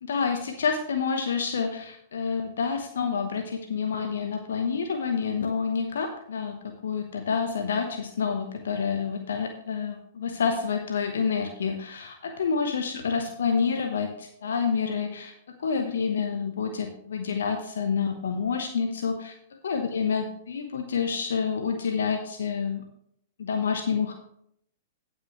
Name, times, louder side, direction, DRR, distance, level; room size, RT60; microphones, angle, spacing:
voice 1, 0.0-19.3 19.6-22.8 23.4-24.1, left 6 dB, 70° left, 5 dB, 1.0 m, -28 dB
17.0 x 6.1 x 3.1 m, 0.69 s
figure-of-eight pair, 105°, 0 cm